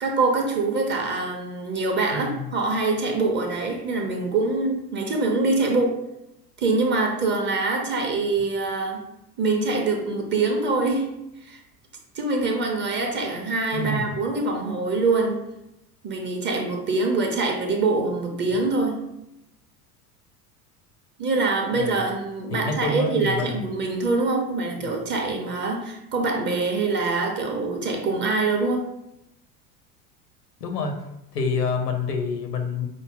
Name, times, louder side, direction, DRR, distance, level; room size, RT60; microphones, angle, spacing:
voice 1, 0.0-6.0 6.6-9.0 9.4-11.1 11.4-11.6 12.1-15.4 16.0-19.0 21.2-28.8, right 3 dB, 25° right, 2 dB, 0.6 m, -24 dB
voice 2, 2.1-2.5 13.7-14.0 21.7-22.0 22.5-23.5 24.8-25.0 30.6-31.0 31.3-32.9, left 3 dB, 75° left, 5 dB, 0.7 m, -27 dB
5.0 x 2.0 x 3.6 m, 0.85 s
figure-of-eight pair, 70°, 48 cm